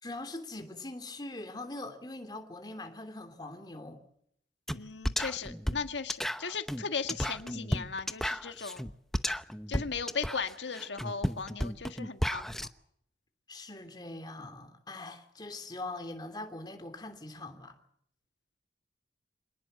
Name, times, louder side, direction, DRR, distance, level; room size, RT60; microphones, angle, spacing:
voice 1, 0.0-4.0 13.5-17.7, left 2 dB, 25° left, 3.1 m, -42 dB
voice 2, 4.7-8.9 9.7-12.5, left 5 dB, 85° left, 1.6 m, -37 dB
sound 1, 4.7-4.8 5.0-12.7, equal, ahead, 0.8 m, -33 dB
26.5 x 19.0 x 7.7 m
head